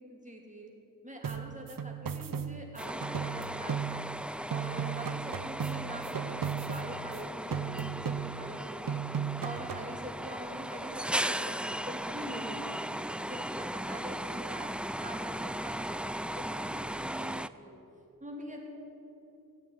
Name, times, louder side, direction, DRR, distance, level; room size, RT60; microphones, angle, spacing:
voice 1, 0.1-0.7 1.0-4.0 4.5-9.0 9.4-14.7 15.0-17.3 17.6-17.7 18.2-18.7, right 1 dB, 20° right, 0 dB, 3.2 m, -44 dB
sound 1, 1.2-4.2 4.5-7.2 7.5-8.6 8.9-10.0, right 7 dB, 60° right, 0.8 m, -36 dB
sound 2, 2.8-17.5, right 1 dB, 5° right, 0.4 m, -37 dB
15.0 x 8.4 x 9.5 m, 2.9 s
cardioid pair, 50°, 38 cm